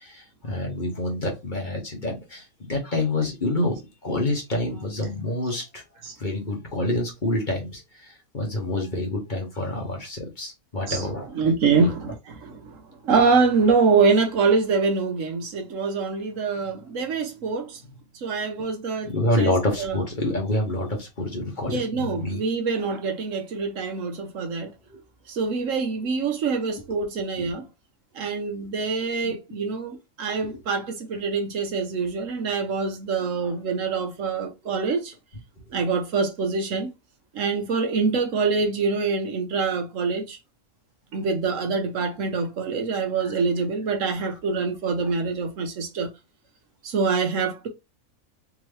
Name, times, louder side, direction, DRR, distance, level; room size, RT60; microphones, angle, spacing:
voice 1, 0.0-3.8 4.0-5.8 6.2-11.3 11.8-11.9 19.0-22.4 24.9-25.0 27.0-27.1 27.4-27.5 29.2-29.3 30.4-30.5 33.4-33.5, left 1 dB, 35° left, 1.2 m, -27 dB
voice 2, 10.8-17.8 18.1-19.5 19.8-20.0 21.7-24.7 25.3-27.7 28.1-35.1 35.7-36.9 37.3-40.4 41.1-46.1 46.8-47.7, right 4 dB, 65° right, 1.2 m, -25 dB
3.6 x 3.0 x 3.1 m
omnidirectional pair, 1.5 m